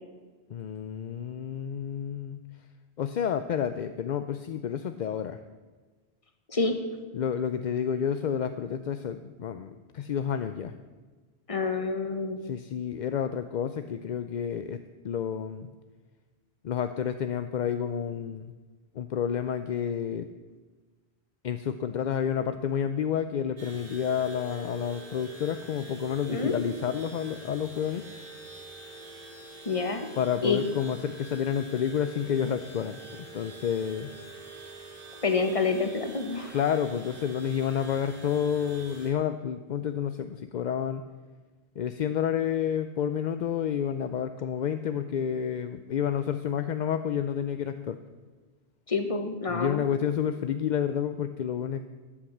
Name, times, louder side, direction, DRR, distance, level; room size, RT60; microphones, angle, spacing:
voice 1, 0.5-2.4 3.0-5.4 7.1-10.7 12.4-15.7 16.6-18.5 18.9-20.3 21.4-28.0 30.2-34.1 36.5-41.0 41.8-48.0 49.5-51.8, left 8 dB, 55° left, 10 dB, 0.6 m, -30 dB
voice 2, 11.5-12.4 26.3-26.6 29.6-30.1 30.4-30.7 35.2-36.5 48.9-49.9, left 4 dB, 35° left, 6 dB, 1.3 m, -27 dB
sound 1, 23.6-39.1, right 3 dB, 55° right, 2.8 m, -46 dB
13.0 x 8.8 x 7.2 m, 1.3 s
omnidirectional pair, 1.1 m